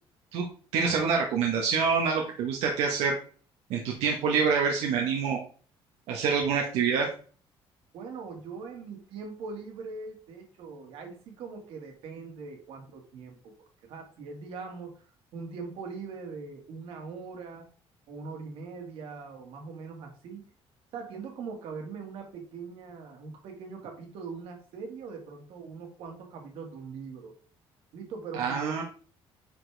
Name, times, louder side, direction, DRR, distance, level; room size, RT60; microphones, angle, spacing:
voice 1, 0.7-3.2 3.7-5.4 6.1-7.1 28.4-28.8, right 5 dB, 90° right, 0 dB, 1.4 m, -26 dB
voice 2, 7.9-15.0 15.3-17.7 18.1-20.4 20.9-27.3 27.9-28.8, right 4 dB, 70° right, 3 dB, 2.1 m, -41 dB
9.6 x 4.4 x 3.4 m, 0.42 s
cardioid pair, 175°, 10 cm